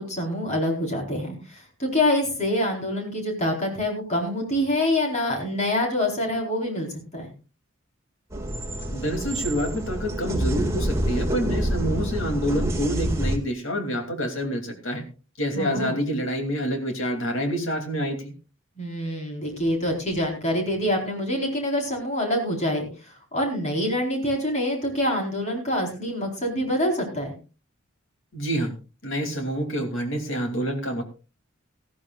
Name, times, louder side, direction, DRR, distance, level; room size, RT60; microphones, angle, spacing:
voice 1, 0.0-7.3 15.5-16.0 18.8-27.3, left 1 dB, 35° left, 1 dB, 4.4 m, -26 dB
sound 1, 8.3-13.4, equal, 15° right, 2.0 m, -27 dB
voice 2, 8.9-15.0 15.4-18.3 28.3-28.7 29.0-31.0, equal, 70° left, 5 dB, 2.8 m, -27 dB
18.5 x 14.0 x 2.4 m, 0.32 s
head